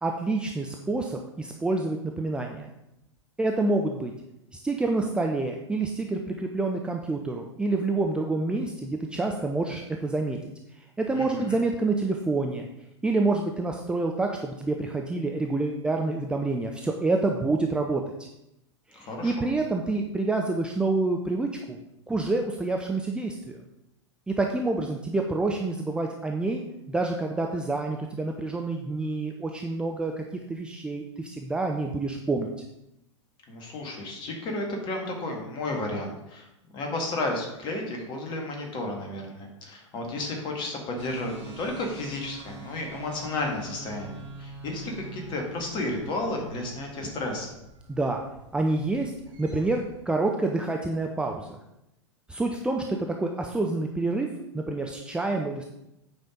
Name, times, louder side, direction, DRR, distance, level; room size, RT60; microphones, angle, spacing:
voice 1, 0.0-2.7 3.4-4.1 4.5-10.4 10.8-12.7 13.0-18.3 18.9-21.8 22.1-23.6 24.3-32.5 47.9-48.2 48.5-49.1 49.4-51.5 52.3-55.6, right 3 dB, 5° right, 2 dB, 0.6 m, -28 dB
voice 2, 11.1-11.6 18.9-19.5 33.5-36.5 36.7-47.5, left 2 dB, 30° left, 1 dB, 2.1 m, -32 dB
sound 1, 41.0-50.0, right 2 dB, 35° right, 3.2 m, -45 dB
8.5 x 5.3 x 5.2 m, 0.86 s
figure-of-eight pair, 95°, 16 cm